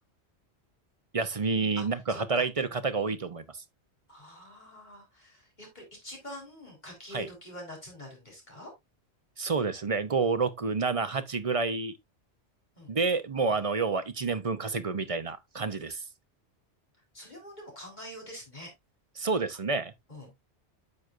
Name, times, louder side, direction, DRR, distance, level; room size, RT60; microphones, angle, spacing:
voice 1, 1.1-3.4 7.1-7.3 9.4-12.0 12.9-16.0 19.2-19.9, right 4 dB, 35° right, 0.6 m, -29 dB
voice 2, 1.8-2.5 4.1-8.7 12.8-12.9 13.5-13.6 17.1-18.7 20.1-20.3, left 1 dB, 40° left, 4.3 m, -46 dB
9.6 x 6.2 x 2.5 m
omnidirectional pair, 1.2 m